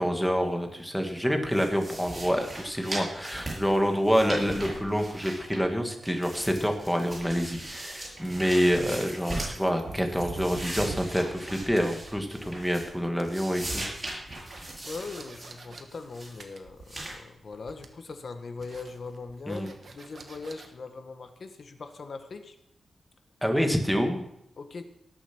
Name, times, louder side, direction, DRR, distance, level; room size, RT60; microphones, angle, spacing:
voice 1, 0.0-13.8 19.5-19.7 23.4-24.2, equal, ahead, 3 dB, 1.7 m, -27 dB
sound 1, 1.5-5.8 6.0-9.6 10.0-13.0 13.2-15.5 15.9-16.4 16.9-17.2, right 1 dB, 20° right, 6.6 m, -39 dB
sound 2, 8.4-11.5 11.8-12.6 12.9-15.8 16.4-17.3 17.5-18.1 18.6-20.7, right 4 dB, 50° right, 1.2 m, -44 dB
voice 2, 14.8-22.5 24.6-24.8, left 4 dB, 50° left, 7 dB, 1.4 m, -40 dB
18.0 x 7.1 x 6.1 m, 0.77 s
wide cardioid pair, 150°, 0 cm